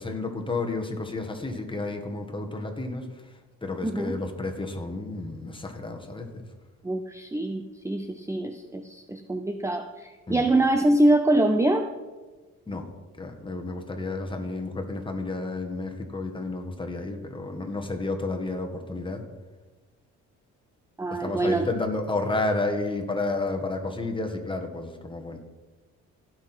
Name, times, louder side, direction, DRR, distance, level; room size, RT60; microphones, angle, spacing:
voice 1, 0.0-3.3 3.6-6.4 10.3-10.5 12.7-12.9 13.2-19.2 21.1-25.4, left 2 dB, 15° left, 3 dB, 1.8 m, -31 dB
voice 2, 3.8-4.1 6.8-11.9 21.0-21.6, right 1 dB, 10° right, 6 dB, 0.6 m, -24 dB
16.5 x 6.2 x 4.5 m, 1.3 s
cardioid pair, 90°, 30 cm